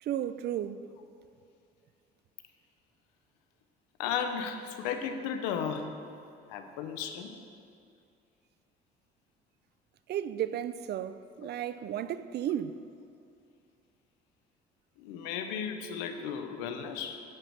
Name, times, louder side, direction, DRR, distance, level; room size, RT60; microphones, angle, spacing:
voice 1, 0.0-0.8 10.1-12.8, right 10 dB, 55° right, 0.5 m, -34 dB
voice 2, 4.0-5.9 6.5-7.3 15.0-17.2, left 7 dB, 80° left, 0.8 m, -34 dB
11.0 x 5.0 x 7.1 m
hypercardioid pair, 60°, 21 cm